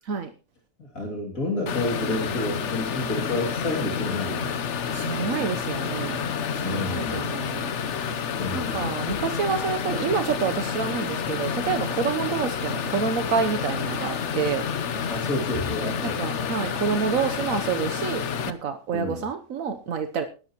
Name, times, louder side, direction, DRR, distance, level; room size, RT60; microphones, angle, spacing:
voice 1, 0.8-4.5 6.6-7.6 8.4-8.9 15.1-16.4 18.9-19.2, left 2 dB, 85° left, 1 dB, 3.3 m, -30 dB
sound 1, 1.7-18.5, left 6 dB, 60° left, 1.2 m, -29 dB
voice 2, 4.9-6.2 6.5-7.7 8.5-14.6 16.0-20.2, right 6 dB, 80° right, 7 dB, 1.4 m, -28 dB
20.0 x 11.0 x 3.0 m, 0.35 s
omnidirectional pair, 1.4 m